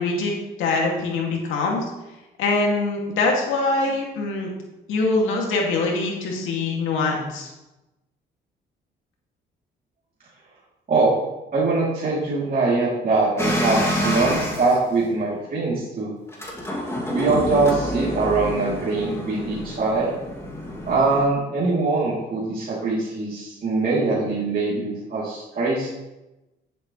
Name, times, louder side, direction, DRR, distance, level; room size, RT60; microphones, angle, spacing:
voice 1, 0.0-1.8 2.4-4.5 4.9-7.5, left 3 dB, 90° left, -1 dB, 2.3 m, -23 dB
voice 2, 11.5-16.1 17.1-20.1 20.9-25.9, right 3 dB, 45° right, -8 dB, 3.0 m, -22 dB
sound 1, 13.4-14.8 16.3-21.3, equal, 15° left, 2.4 m, -27 dB
11.0 x 7.8 x 3.2 m, 1.0 s
cardioid pair, 90°, 20 cm